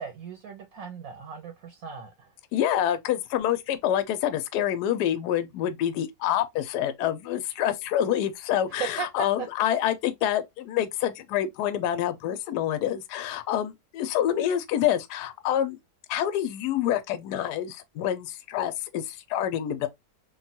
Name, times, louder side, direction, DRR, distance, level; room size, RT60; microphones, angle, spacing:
voice 1, 0.0-2.3 8.8-9.5, right 7 dB, 65° right, 1.0 m, -36 dB
voice 2, 2.5-15.8 16.1-19.9, left 11 dB, 75° left, 1.1 m, -27 dB
3.1 x 2.3 x 2.7 m
omnidirectional pair, 1.8 m